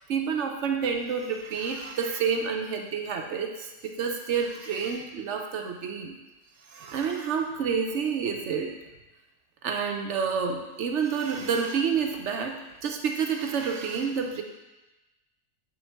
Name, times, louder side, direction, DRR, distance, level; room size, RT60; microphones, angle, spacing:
voice 1, 0.1-6.1 6.7-8.7 9.6-12.5 12.8-14.4, right 6 dB, 75° right, 3 dB, 1.0 m, -29 dB
7.8 x 3.7 x 6.4 m, 1.1 s
omnidirectional pair, 1.2 m